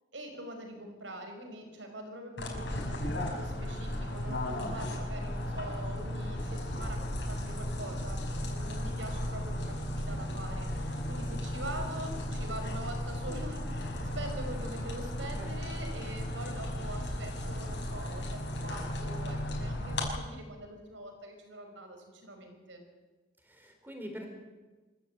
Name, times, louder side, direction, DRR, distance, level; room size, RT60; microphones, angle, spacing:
voice 1, 0.1-22.8, right 1 dB, 75° right, 5 dB, 5.4 m, -44 dB
sound 1, 2.4-20.1, left 1 dB, 65° left, 5.7 m, -35 dB
voice 2, 15.3-15.7 23.5-24.3, equal, 10° right, 3 dB, 4.5 m, -44 dB
25.5 x 15.0 x 9.0 m, 1.3 s
head